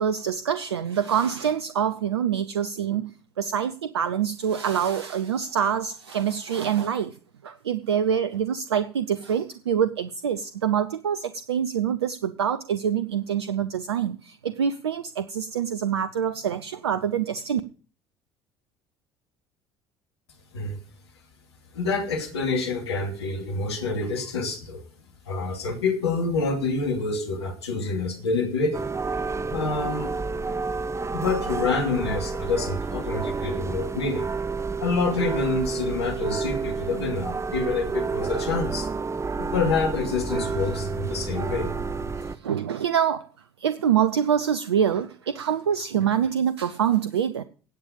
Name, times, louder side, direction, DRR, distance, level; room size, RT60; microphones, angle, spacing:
voice 1, 0.0-3.1 3.4-7.1 7.4-17.6 42.4-43.3 43.6-47.4, right 8 dB, 85° right, 14 dB, 0.6 m, -25 dB
voice 2, 21.7-24.8 25.3-28.8 29.5-30.1 31.1-34.3 34.8-38.9 39.4-42.1, left 3 dB, 85° left, 4 dB, 2.6 m, -27 dB
sound 1, 28.7-42.4, right 4 dB, 20° right, 0.9 m, -30 dB
16.5 x 8.7 x 5.3 m, 0.40 s
hypercardioid pair, 65°, 13 cm